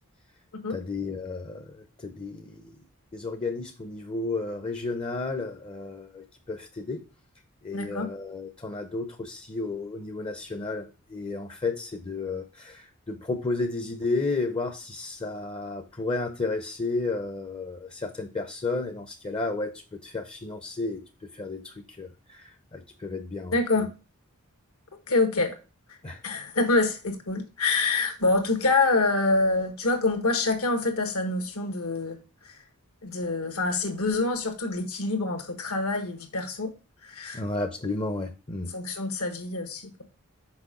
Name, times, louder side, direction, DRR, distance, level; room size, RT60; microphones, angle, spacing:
voice 1, 0.7-2.8 3.1-7.0 7.6-23.9 26.0-26.2 37.3-38.7, left 3 dB, 25° left, 0.7 m, -32 dB
voice 2, 7.7-8.1 23.5-23.9 25.1-25.6 25.9-26.0 26.2-32.2 32.4-32.6 33.0-36.7 37.0-37.4 38.7-40.0, left 3 dB, 70° left, 1.4 m, -26 dB
6.1 x 5.1 x 3.7 m
head